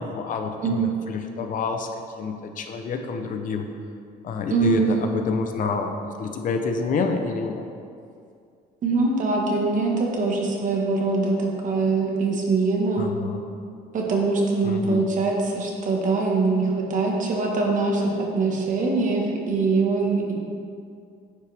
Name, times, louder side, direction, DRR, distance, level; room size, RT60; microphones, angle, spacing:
voice 1, 0.0-1.9 2.2-3.7 4.2-7.7 13.0-13.4 14.6-15.0, left 4 dB, 50° left, 5 dB, 0.7 m, -28 dB
voice 2, 0.6-1.2 4.5-5.1 8.8-13.1 13.9-20.3, right 3 dB, 50° right, -1 dB, 1.5 m, -23 dB
9.7 x 5.6 x 3.4 m, 2.3 s
cardioid pair, 110°, 17 cm